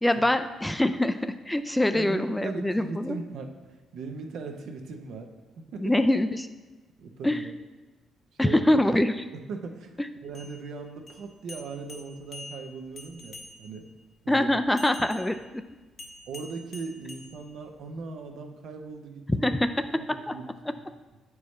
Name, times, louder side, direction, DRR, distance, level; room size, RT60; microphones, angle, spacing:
voice 1, 0.0-3.2 5.8-6.5 7.2-7.4 8.4-9.3 14.3-15.4 19.4-19.6 20.1-20.3, left 1 dB, 10° left, 9 dB, 0.3 m, -24 dB
voice 2, 1.9-5.9 7.0-7.5 8.4-8.6 9.3-13.9 14.2-14.5 16.3-20.8, right 4 dB, 75° right, 4 dB, 0.7 m, -39 dB
sound 1, 10.2-13.9 14.8-18.0, left 2 dB, 50° left, 0.8 m, -47 dB
8.1 x 4.7 x 3.2 m, 1.2 s
cardioid pair, 90°, 0 cm